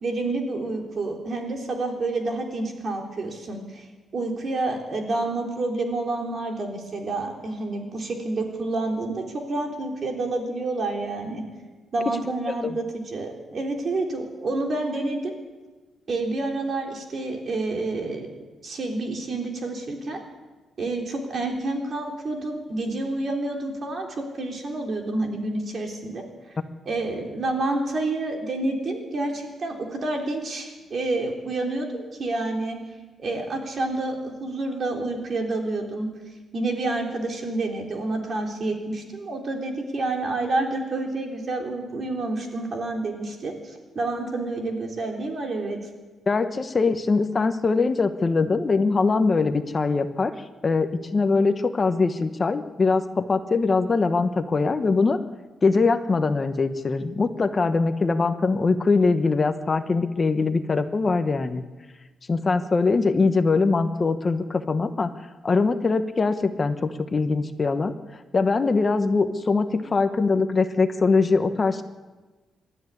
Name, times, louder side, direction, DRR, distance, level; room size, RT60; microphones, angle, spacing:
voice 1, 0.0-3.9 4.1-9.2 9.5-11.4 11.9-15.3 16.1-18.3 18.6-20.2 20.8-26.2 26.9-32.8 33.2-36.1 36.5-45.8, right 2 dB, 40° right, 2 dB, 3.5 m, -28 dB
voice 2, 46.3-55.2 55.6-61.6 62.3-65.1 65.4-71.8, left 4 dB, 25° left, 8 dB, 1.1 m, -22 dB
26.0 x 13.5 x 9.8 m, 1.3 s
cardioid pair, 155°, 0 cm